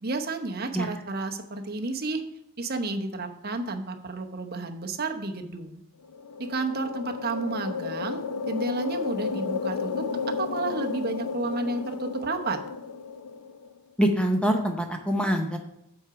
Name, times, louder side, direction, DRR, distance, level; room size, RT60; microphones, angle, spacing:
voice 1, 0.0-2.2 2.6-5.8 6.4-12.7, right 3 dB, 45° right, 5 dB, 0.8 m, -31 dB
sound 1, 6.0-13.7, left 5 dB, 85° left, 0.5 m, -33 dB
voice 2, 14.0-15.6, equal, 5° left, 3 dB, 0.7 m, -24 dB
7.9 x 4.8 x 6.9 m, 0.82 s
head